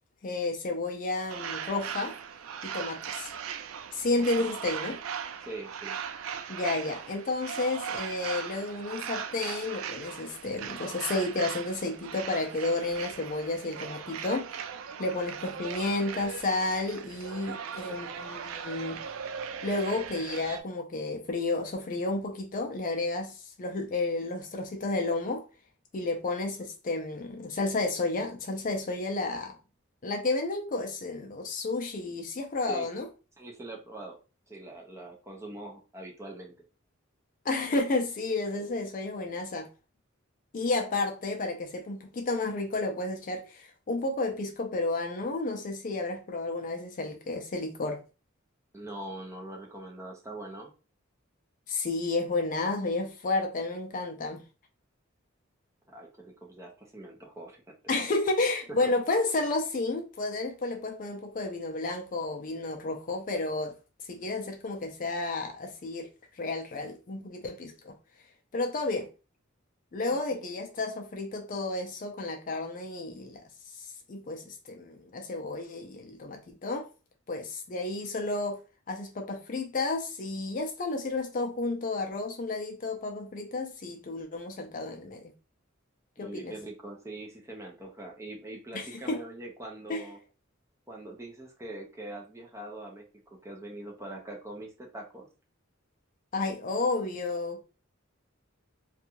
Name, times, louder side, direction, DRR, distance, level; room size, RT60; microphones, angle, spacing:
voice 1, 0.2-2.2 2.6-3.3 3.9-5.0 6.5-14.5 15.0-19.0 19.6-25.4 25.9-29.6 30.0-33.1 37.4-39.7 40.5-48.0 51.7-54.4 57.9-63.7 64.1-67.9 68.5-69.1 69.9-73.4 73.7-76.9 77.3-78.6 78.9-85.3 86.2-86.5 88.7-89.2 89.9-90.1 96.3-97.6, left 2 dB, 40° left, 0.4 m, -31 dB
sound 1, 1.3-20.6, right 7 dB, 80° right, 0.3 m, -39 dB
voice 2, 4.1-4.5 5.4-6.0 32.7-32.9 33.4-34.2 34.5-36.5 38.5-38.7 48.7-50.7 55.9-57.6 58.8-58.9 70.1-70.4 86.2-90.2 90.9-93.1 93.4-95.3, right 2 dB, 15° right, 0.7 m, -43 dB
2.6 x 2.3 x 2.8 m
head